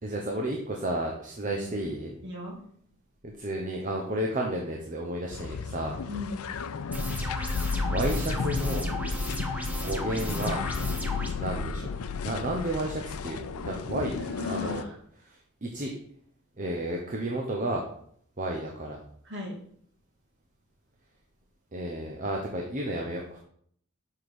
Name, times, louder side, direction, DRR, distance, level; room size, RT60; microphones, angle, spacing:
voice 1, 0.0-2.2 3.2-5.9 7.4-7.6 7.9-8.9 9.8-10.6 11.4-12.0 12.2-14.2 14.5-14.9 15.2-15.9 16.6-17.8 18.4-19.0 21.7-23.4, right 1 dB, 35° right, 0 dB, 0.9 m, -32 dB
voice 2, 2.2-2.6 6.1-6.4 14.2-14.9 19.2-19.5, left 2 dB, 55° right, -1 dB, 2.4 m, -37 dB
sound 1, 5.3-14.8, left 5 dB, 80° left, 0.5 m, -33 dB
sound 2, 6.9-11.3, equal, 5° right, 0.9 m, -34 dB
5.7 x 5.2 x 6.2 m, 0.63 s
head